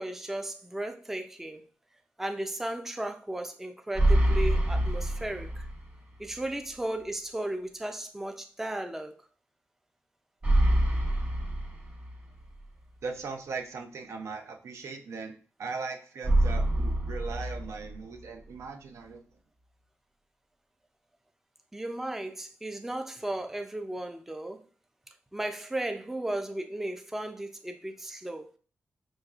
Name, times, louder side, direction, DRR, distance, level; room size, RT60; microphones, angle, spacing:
voice 1, 0.0-1.7 2.2-5.7 6.2-9.1 21.7-24.6 25.3-28.5, right 1 dB, 5° right, 0.4 m, -35 dB
sound 1, 3.9-6.0 6.3-6.4 10.4-12.4 16.2-18.2, right 1 dB, 30° right, 1.1 m, -26 dB
voice 2, 13.0-19.2, right 4 dB, 80° right, 0.6 m, -39 dB
5.1 x 3.1 x 2.4 m
wide cardioid pair, 135°, 5 cm